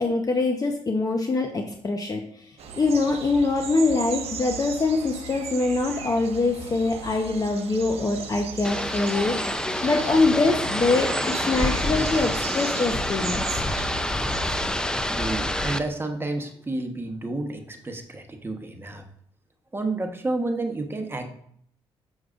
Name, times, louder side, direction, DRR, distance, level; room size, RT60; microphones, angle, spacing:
voice 1, 0.0-2.2 2.7-9.4 9.8-13.6, left 3 dB, 35° left, 3 dB, 0.8 m, -24 dB
sound 1, 2.6-14.7, right 5 dB, 70° right, 0.9 m, -37 dB
sound 2, 8.6-15.8, left 1 dB, 5° left, 0.5 m, -27 dB
voice 2, 15.0-19.0 19.7-21.2, right 2 dB, 20° right, 5 dB, 1.0 m, -30 dB
6.3 x 6.3 x 2.5 m, 0.65 s
cardioid pair, 65°, 11 cm